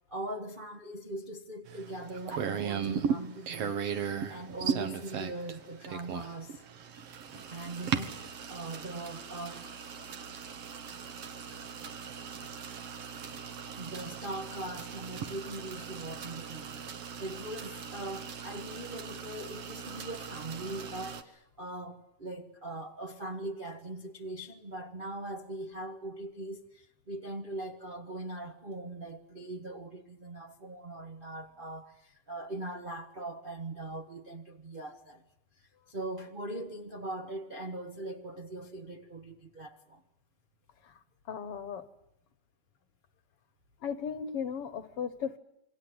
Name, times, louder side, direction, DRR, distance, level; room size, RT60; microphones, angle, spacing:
voice 1, 0.1-6.6 7.5-9.7 13.7-35.2 35.6-40.0, right 2 dB, 40° right, 0.7 m, -41 dB
sound 1, 1.7-21.2, right 7 dB, 60° right, 2.4 m, -38 dB
voice 2, 41.3-41.8 43.8-45.4, left 7 dB, 60° left, 1.9 m, -36 dB
28.0 x 24.0 x 8.0 m
omnidirectional pair, 3.3 m